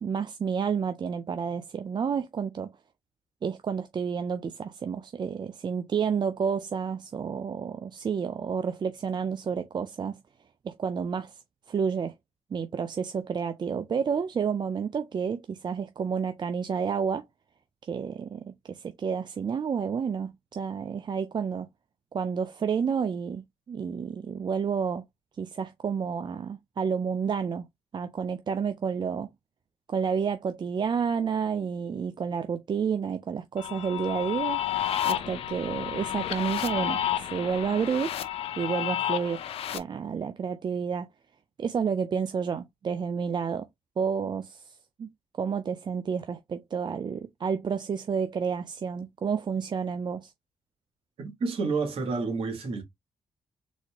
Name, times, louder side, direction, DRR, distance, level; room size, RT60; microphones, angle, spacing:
voice 1, 0.0-2.7 3.4-10.2 10.6-11.4 11.7-12.1 12.5-17.2 17.9-21.7 22.1-25.0 25.4-27.6 27.9-29.3 29.9-34.6 35.0-38.1 38.6-39.4 39.7-41.1 41.6-43.7 44.0-45.1 45.4-50.3, right 6 dB, 50° right, 0.6 m, -30 dB
sound 1, 33.6-39.8, left 11 dB, 75° left, 0.6 m, -31 dB
voice 2, 51.2-52.8, right 4 dB, 70° right, 2.0 m, -29 dB
4.2 x 2.9 x 3.5 m
supercardioid pair, 55°, 10 cm